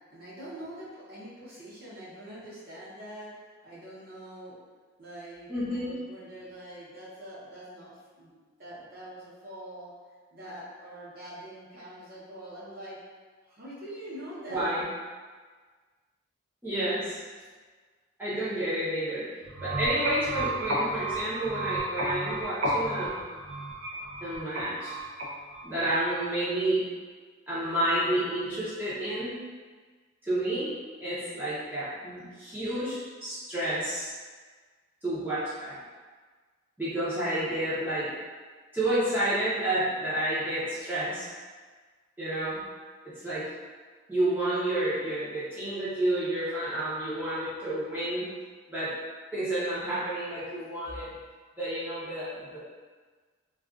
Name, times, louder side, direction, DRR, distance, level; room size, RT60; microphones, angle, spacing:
voice 1, 0.1-3.3 3.6-4.6 5.0-9.9 10.3-13.0 13.4-14.7, right 1 dB, 45° right, -8 dB, 0.8 m, -44 dB
voice 2, 5.5-6.0 14.5-14.8 16.6-17.2 18.2-19.2 19.6-23.2 24.2-25.0 25.6-26.8 27.5-29.3 30.2-30.7 31.0-34.1 35.0-35.8 36.8-38.1 38.7-41.3 42.2-42.6 43.0-43.4 44.1-48.2 48.7-48.9 49.3-51.1 51.6-52.6, right 1 dB, 10° right, -12 dB, 0.6 m, -30 dB
sound 1, 19.4-26.2, right 1 dB, 80° right, 0.5 m, -32 dB
2.3 x 2.3 x 2.4 m, 1.5 s
head